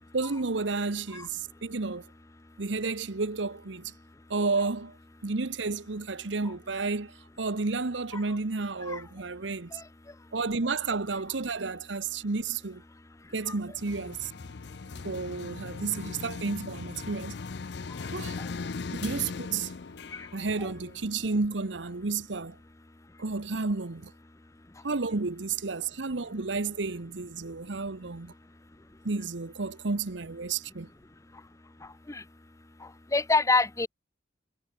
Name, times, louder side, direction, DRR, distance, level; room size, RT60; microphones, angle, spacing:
voice 1, 0.1-2.1 2.6-3.9 4.3-5.0 5.2-9.7 10.3-12.8 13.3-14.3 15.0-17.4 18.1-18.4 19.0-19.7 20.3-22.6 23.2-24.1 24.8-28.3 29.0-30.9, right 4 dB, 75° right, 1.0 m, -31 dB
sound 1, 13.8-21.7, left 4 dB, 60° left, 0.6 m, -39 dB
voice 2, 33.1-33.9, left 3 dB, 15° left, 0.6 m, -26 dB
head